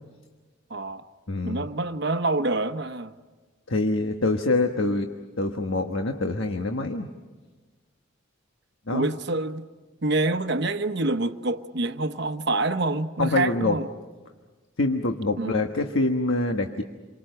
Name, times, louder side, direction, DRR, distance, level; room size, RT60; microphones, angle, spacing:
voice 1, 0.7-1.0 1.4-3.1 8.9-9.7 10.0-13.9 15.4-15.6, right 2 dB, 55° right, 1.0 m, -26 dB
voice 2, 1.3-1.6 3.7-5.1 5.4-7.1 8.9-9.2 13.2-13.8 14.8-16.8, left 2 dB, 75° left, 1.3 m, -25 dB
28.5 x 24.0 x 6.7 m
head